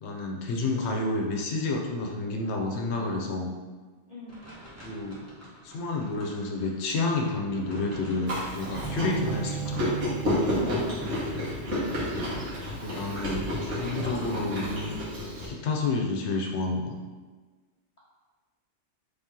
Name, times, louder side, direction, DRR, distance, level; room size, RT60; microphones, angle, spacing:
voice 1, 0.0-3.5 4.8-5.2 5.6-10.0 12.8-14.9 15.4-16.9, left 3 dB, 70° left, 1 dB, 0.9 m, -30 dB
voice 2, 4.1-4.4 9.0-9.4 10.5-11.5 18.0-18.1, left 2 dB, 40° left, -6 dB, 0.6 m, -42 dB
sound 1, 4.3-9.3, equal, 15° right, 0.9 m, -49 dB
Chewing mastication, 8.3-15.5, left 1 dB, 85° right, 1.7 m, -30 dB
Bowed string instrument, 8.7-14.0, right 9 dB, 60° right, 0.9 m, -39 dB
3.6 x 2.8 x 3.6 m, 1.4 s
omnidirectional pair, 1.2 m